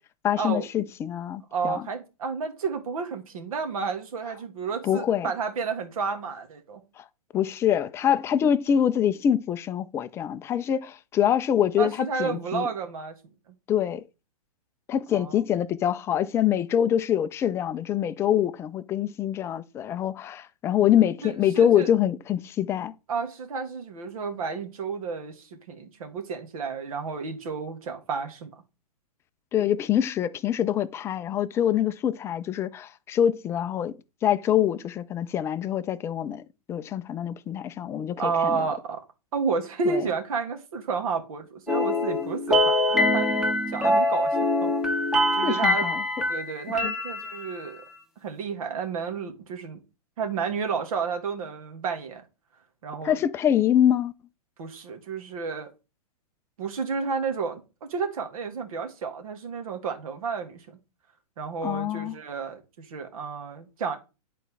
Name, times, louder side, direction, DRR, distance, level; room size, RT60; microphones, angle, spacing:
voice 1, 0.2-1.8 4.8-5.3 7.0-7.1 7.3-12.7 13.7-14.0 14.9-22.9 29.5-34.0 34.2-36.4 36.7-38.7 39.9-40.0 45.4-46.0 46.8-46.9 53.0-54.1 61.6-62.1, left 10 dB, 15° left, 0.3 m, -25 dB
voice 2, 1.5-6.8 11.8-13.2 13.5-13.6 15.1-15.4 21.2-21.9 23.1-28.5 38.2-39.0 39.3-45.1 45.3-45.9 46.3-47.8 48.2-49.8 50.2-52.2 52.8-53.2 54.6-55.7 56.6-60.8 61.4-64.0, right 5 dB, 60° right, 1.9 m, -31 dB
sound 1, 41.7-47.7, left 1 dB, 5° right, 1.4 m, -24 dB
10.5 x 4.2 x 3.5 m
hypercardioid pair, 120°, 20 cm